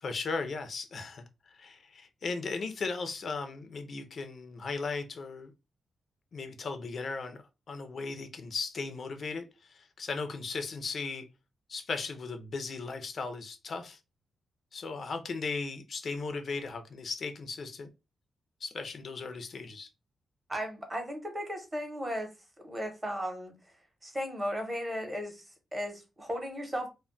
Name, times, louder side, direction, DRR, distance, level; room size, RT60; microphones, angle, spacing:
voice 1, 0.0-5.5 6.3-7.4 7.7-11.2 11.7-14.0 14.7-17.9 18.6-19.9, left 4 dB, 45° left, 0.4 m, -37 dB
voice 2, 20.5-22.3 22.6-23.7 24.0-26.9, equal, 15° right, 0.7 m, -36 dB
2.2 x 2.0 x 3.7 m
wide cardioid pair, 155°, 0 cm